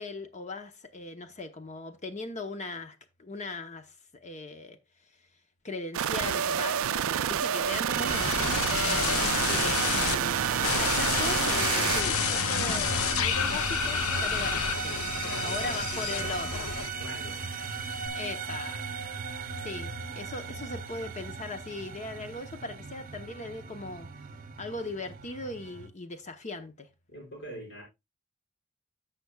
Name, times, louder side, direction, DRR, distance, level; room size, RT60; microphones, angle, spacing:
voice 1, 0.0-4.8 5.6-15.0 15.4-16.7 18.1-19.1 19.6-24.1 24.6-26.9, left 2 dB, 35° left, 0.8 m, -39 dB
sound 1, 5.9-12.0, right 9 dB, 75° right, 0.4 m, -28 dB
sound 2, 7.9-25.9, right 5 dB, 40° right, 0.7 m, -36 dB
sound 3, 8.1-10.2 10.6-17.2 17.5-18.1, left 8 dB, 85° left, 0.6 m, -30 dB
voice 2, 10.6-10.9 15.2-16.4 17.0-17.5 27.1-27.8, equal, 60° left, 5.3 m, -43 dB
14.5 x 5.9 x 2.3 m
head